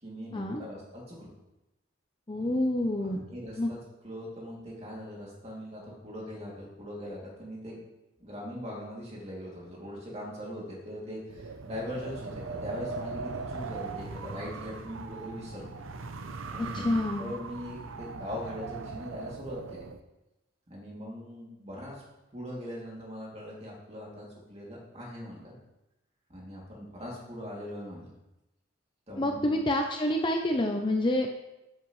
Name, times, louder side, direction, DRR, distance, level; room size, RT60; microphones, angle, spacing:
voice 1, 0.0-1.3 3.0-7.9 8.2-15.7 16.5-19.9 20.7-22.0 22.3-25.5 26.3-28.1 29.1-29.6, equal, 30° right, -4 dB, 2.6 m, -41 dB
voice 2, 2.3-3.2 3.6-3.7 16.6-17.2 29.2-31.3, left 1 dB, 25° left, 2 dB, 0.6 m, -28 dB
Wind, 11.3-20.0, right 4 dB, 85° right, 0.7 m, -39 dB
13.5 x 7.7 x 3.2 m, 0.96 s
head